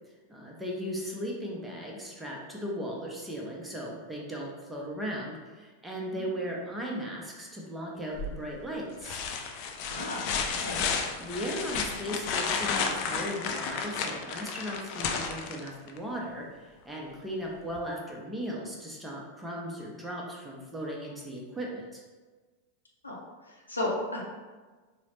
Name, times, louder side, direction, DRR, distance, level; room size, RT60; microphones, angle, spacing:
voice 1, 0.3-9.2 10.7-10.9 11.2-22.0, equal, 5° right, -3 dB, 0.6 m, -37 dB
sound 1, 8.2-8.6 9.0-16.0 17.8-17.9, left 5 dB, 45° left, 0.3 m, -32 dB
voice 2, 9.8-10.8 23.0-23.2 23.5-24.2, left 2 dB, 80° left, -3 dB, 0.6 m, -34 dB
3.9 x 2.0 x 2.9 m, 1.3 s
figure-of-eight pair, 90°, 0 cm